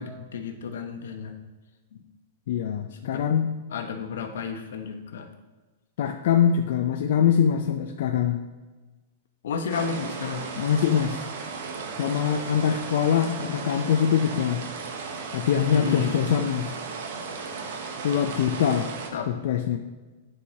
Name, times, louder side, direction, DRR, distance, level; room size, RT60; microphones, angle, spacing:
voice 1, 0.0-1.3 1.9-2.0 3.1-3.2 3.7-5.3 9.4-10.5 15.7-16.1 19.1-19.3, left 6 dB, 80° left, 6 dB, 0.9 m, -32 dB
voice 2, 2.5-3.6 6.0-8.4 10.6-11.2 12.0-14.6 15.3-16.7 18.0-18.9 19.3-19.8, left 8 dB, 55° left, 4 dB, 0.4 m, -23 dB
sound 1, 9.7-19.1, right 4 dB, 60° right, 0.9 m, -35 dB
10.0 x 4.7 x 2.8 m, 1.3 s
supercardioid pair, 170°, 0 cm